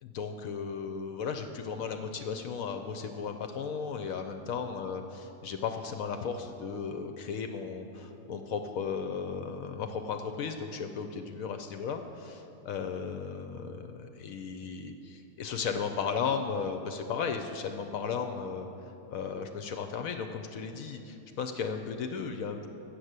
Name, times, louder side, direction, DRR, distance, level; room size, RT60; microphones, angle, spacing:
voice 1, 0.0-18.7 19.1-22.7, left 6 dB, 70° left, 6 dB, 0.9 m, -35 dB
7.5 x 6.7 x 8.0 m, 2.8 s
omnidirectional pair, 1.7 m